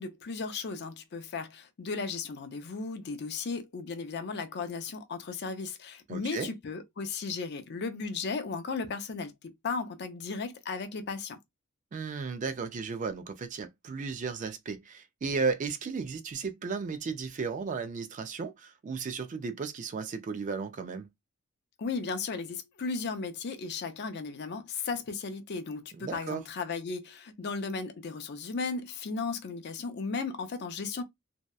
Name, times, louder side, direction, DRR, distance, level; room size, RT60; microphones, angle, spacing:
voice 1, 0.0-11.4 21.8-31.0, left 4 dB, 50° left, 0.5 m, -35 dB
voice 2, 6.1-6.5 11.9-21.1 25.9-26.4, right 5 dB, 35° right, 0.3 m, -34 dB
2.7 x 2.1 x 2.2 m
head